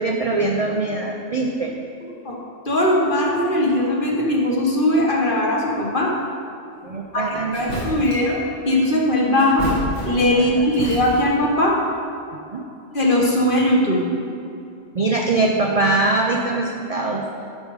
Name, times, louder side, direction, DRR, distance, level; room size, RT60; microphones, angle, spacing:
voice 1, 0.0-1.7 6.8-7.6 10.4-10.6 12.5-12.6 14.9-17.3, right 2 dB, 45° right, 0 dB, 0.5 m, -22 dB
voice 2, 2.6-6.1 7.1-7.2 7.5-8.4 8.6-9.7 10.0-11.8 12.9-14.0, left 1 dB, 45° left, -2 dB, 1.4 m, -19 dB
sound 1, 7.1-7.2 7.5-8.3 9.4-10.4 10.7-11.4, equal, 70° left, 2.2 m, -29 dB
11.0 x 5.1 x 4.8 m, 2.6 s
omnidirectional pair, 1.3 m